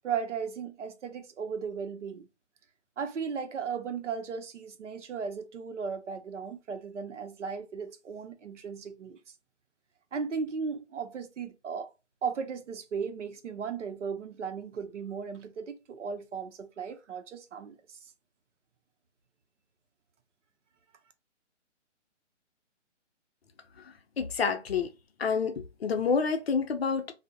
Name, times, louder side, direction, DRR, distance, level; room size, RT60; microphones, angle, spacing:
voice 1, 0.0-2.3 3.0-9.2 10.1-11.9 12.2-18.0, right 6 dB, 75° right, 0.6 m, -36 dB
voice 2, 24.2-24.9 25.2-27.1, left 5 dB, 55° left, 0.5 m, -28 dB
2.7 x 2.0 x 2.2 m
hypercardioid pair, 160°, 37 cm